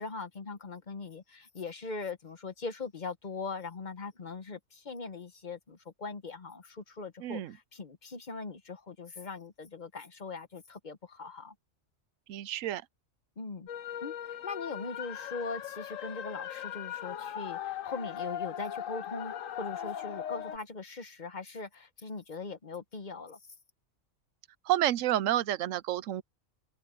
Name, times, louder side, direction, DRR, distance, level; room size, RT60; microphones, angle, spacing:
voice 1, 0.0-11.5 13.4-13.7 14.0-23.4, left 4 dB, 40° left, 1.0 m, -41 dB
voice 2, 7.2-7.5 12.3-12.8 24.7-26.2, right 13 dB, 90° right, 1.0 m, -29 dB
sound 1, 13.7-20.6, left 10 dB, 85° left, 1.2 m, -39 dB
omnidirectional pair, 1.3 m